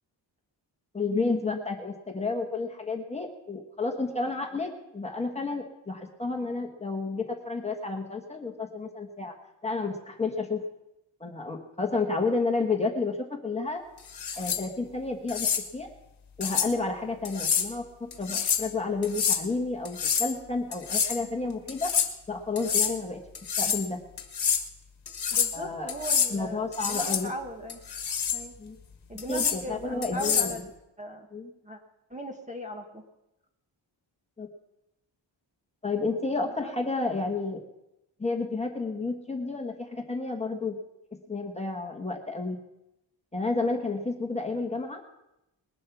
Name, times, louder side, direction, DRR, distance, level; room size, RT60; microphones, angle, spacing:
voice 1, 0.9-9.3 9.6-10.6 11.2-13.8 14.4-15.9 16.4-21.9 22.3-23.2 23.6-24.0 25.5-25.9 26.3-27.3 28.6-28.8 29.3-30.5 31.3-31.5 34.4-34.5 35.8-37.6 38.2-40.8 41.3-42.6 43.3-45.0, left 3 dB, 15° left, 1 dB, 1.3 m, -31 dB
sound 1, 14.1-14.6 15.3-15.6 16.4-16.7 17.2-17.7 18.1-18.7 19.0-19.4 19.8-20.3 20.7-21.2 21.7-22.1 22.6-22.9 23.3-23.8 24.2-24.6 25.1-25.6 25.9-26.3 26.7-27.2 27.7-28.4 29.2-29.6 30.0-30.5, left 7 dB, 55° left, 1.4 m, -27 dB
voice 2, 25.3-27.8 28.3-28.5 29.1-30.6 31.0-31.3 31.6-31.8 32.1-33.0 36.4-37.0, equal, 15° right, 3 dB, 1.2 m, -38 dB
20.5 x 7.7 x 5.9 m, 0.89 s
wide cardioid pair, 170°, 46 cm